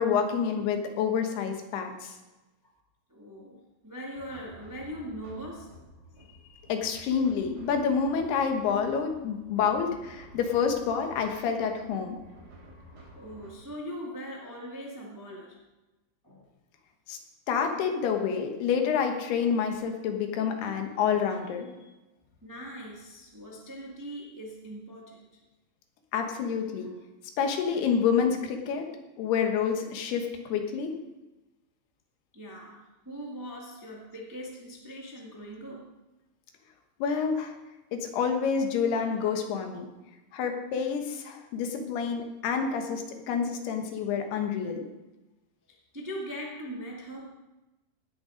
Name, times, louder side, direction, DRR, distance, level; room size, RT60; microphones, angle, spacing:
voice 1, 0.0-2.2 6.7-12.2 17.1-17.2 17.5-21.7 26.1-26.9 27.4-28.9 29.2-31.0 37.0-37.5 37.9-39.9 40.3-44.8, left 6 dB, 85° left, 4 dB, 3.3 m, -28 dB
voice 2, 3.1-5.8 13.1-15.6 16.2-16.5 22.4-25.4 26.8-26.9 32.3-35.9 41.3-41.4 45.7-47.3, equal, 25° right, -2 dB, 0.4 m, -41 dB
sound 1, 4.1-13.5, equal, 85° right, 5.7 m, -51 dB
18.5 x 6.7 x 5.1 m, 1.0 s
omnidirectional pair, 4.5 m